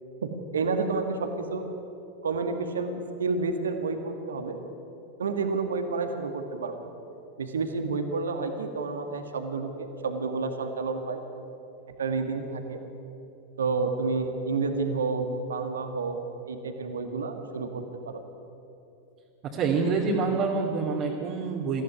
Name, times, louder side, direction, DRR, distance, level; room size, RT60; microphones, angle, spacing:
voice 1, 0.2-1.6 2.2-4.6 5.2-6.8 7.4-11.2 12.0-12.8 13.6-16.2 16.4-18.2, right 4 dB, 70° right, 6 dB, 2.0 m, -30 dB
voice 2, 19.4-21.8, right 4 dB, 35° right, -3 dB, 2.8 m, -26 dB
23.5 x 15.5 x 9.9 m, 2.9 s
figure-of-eight pair, 90°, 0 cm